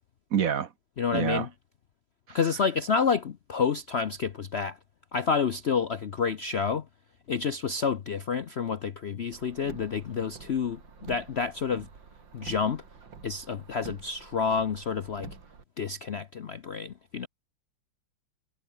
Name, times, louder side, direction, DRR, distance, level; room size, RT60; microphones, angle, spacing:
voice 1, 0.3-0.7 1.1-1.5 2.3-2.4, right 8 dB, 55° right, 1.3 m, -27 dB
voice 2, 1.0-1.5 2.3-4.8 5.1-6.9 7.3-11.9 12.3-12.8 13.2-15.3 15.8-17.3, left 6 dB, 55° left, 0.7 m, -29 dB
Car, 9.3-15.6, right 5 dB, 80° right, 3.3 m, -48 dB
omnidirectional pair, 2.0 m